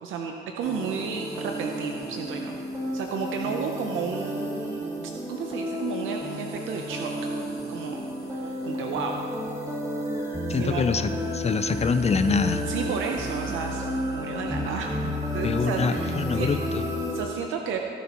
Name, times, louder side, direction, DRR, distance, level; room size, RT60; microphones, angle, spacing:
voice 1, 0.0-2.6 2.9-4.9 5.3-7.1 7.7-8.1 8.3-9.3 10.5-10.8 12.6-16.5 17.1-17.8, right 6 dB, 85° right, 2 dB, 0.7 m, -32 dB
sound 1, 0.6-17.2, equal, 15° right, 2.1 m, -32 dB
voice 2, 10.5-12.7 15.4-16.8, left 5 dB, 35° left, 10 dB, 0.6 m, -25 dB
18.0 x 7.1 x 3.0 m, 2.7 s
cardioid pair, 90°, 20 cm